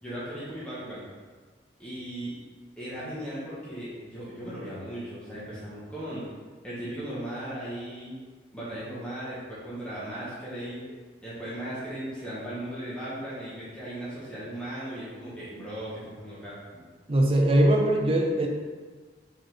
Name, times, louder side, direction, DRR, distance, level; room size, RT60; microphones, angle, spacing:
voice 1, 0.0-1.1 1.8-2.3 2.8-6.3 6.6-8.2 8.5-10.9 11.2-16.8, right 1 dB, 5° left, -10 dB, 1.1 m, -37 dB
voice 2, 17.1-18.5, right 1 dB, 30° right, 1 dB, 0.5 m, -21 dB
4.9 x 3.6 x 3.0 m, 1.5 s
head